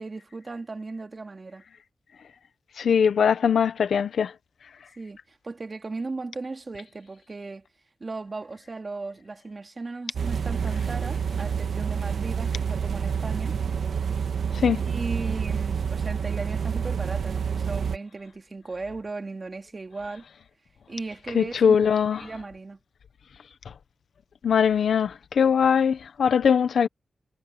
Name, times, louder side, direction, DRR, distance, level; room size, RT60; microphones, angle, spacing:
voice 1, 0.0-1.6 5.0-7.7 8.0-13.6 14.9-20.2 20.9-22.8, right 3 dB, 35° right, 3.2 m, -37 dB
voice 2, 2.8-4.3 14.5-14.9 21.3-22.2 24.4-26.9, left 7 dB, 90° left, 1.2 m, -21 dB
sound 1, 10.1-18.0, right 6 dB, 85° right, 2.4 m, -28 dB
wide cardioid pair, 100°, 0 cm